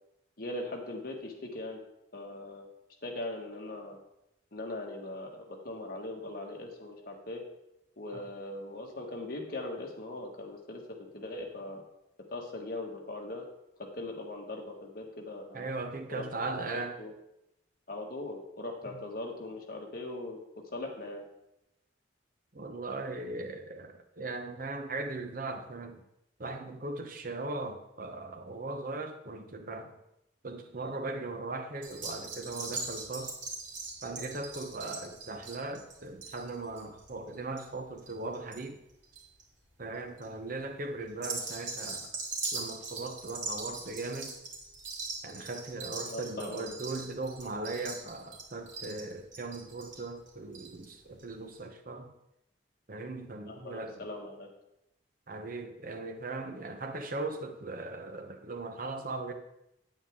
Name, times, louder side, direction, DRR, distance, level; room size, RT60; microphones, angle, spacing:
voice 1, 0.4-1.8 2.1-2.6 3.0-4.0 4.5-7.4 8.0-10.8 11.1-11.8 12.3-13.4 13.8-15.7 16.1-16.3 16.7-17.1 17.9-20.4 20.7-21.2 46.1-46.7 53.5-54.5, left 2 dB, 55° left, 1 dB, 1.8 m, -40 dB
voice 2, 15.5-17.0 18.9-19.0 22.5-26.0 26.4-29.9 30.4-33.3 34.0-38.8 39.8-42.1 42.5-44.3 45.2-52.1 52.9-54.1 55.3-59.3, right 2 dB, 50° right, 6 dB, 0.9 m, -38 dB
sound 1, 31.8-38.6 38.9-39.4 39.9-40.2 41.1-50.9 51.2-51.3 51.5-51.6, right 3 dB, 85° right, 3.2 m, -40 dB
9.5 x 9.1 x 3.7 m, 0.84 s
head